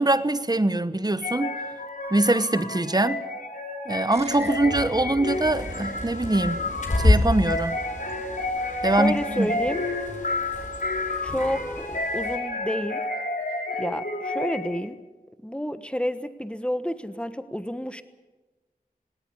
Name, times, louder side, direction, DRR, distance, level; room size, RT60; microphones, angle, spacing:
voice 1, 0.0-1.6 2.1-3.2 3.9-6.6 7.0-7.8 8.8-9.5, right 2 dB, 25° right, 1.1 m, -23 dB
sound 1, 1.2-14.9, left 2 dB, 70° left, 3.4 m, -31 dB
sound 2, 4.1-9.6, right 2 dB, 45° right, 1.9 m, -41 dB
Bird, 5.3-12.4, left 2 dB, 55° left, 4.7 m, -29 dB
voice 2, 8.9-9.8 11.2-13.0 13.8-15.0 15.4-18.0, equal, 5° left, 1.4 m, -29 dB
18.5 x 18.5 x 9.7 m
wide cardioid pair, 65°, 16 cm